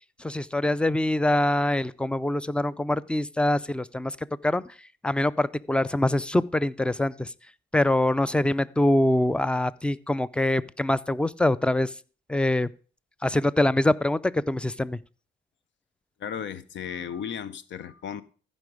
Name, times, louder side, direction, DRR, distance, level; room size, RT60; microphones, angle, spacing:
voice 1, 0.2-4.1 4.4-4.6 5.0-7.3 7.7-11.9 12.3-12.7 13.2-15.0, left 1 dB, 5° left, 0.4 m, -24 dB
voice 2, 16.2-18.2, left 8 dB, 65° left, 0.8 m, -35 dB
14.5 x 5.2 x 4.9 m
cardioid pair, 90°, 20 cm